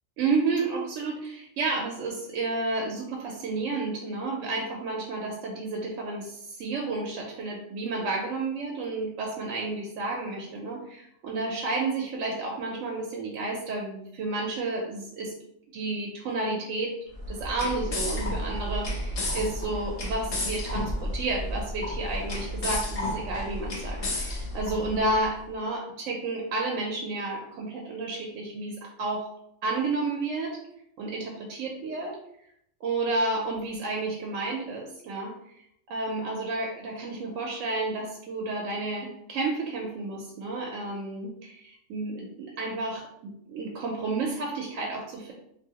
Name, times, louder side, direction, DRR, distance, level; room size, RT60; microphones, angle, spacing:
voice 1, 0.2-15.3 15.7-16.9 17.3-29.3 29.6-30.6 31.0-32.1 32.8-35.3 35.9-45.3, right 3 dB, 75° right, 0 dB, 0.9 m, -31 dB
sound 1, 17.1-25.3, left 1 dB, 60° left, 0.3 m, -32 dB
2.7 x 2.5 x 2.8 m, 0.74 s
omnidirectional pair, 1.3 m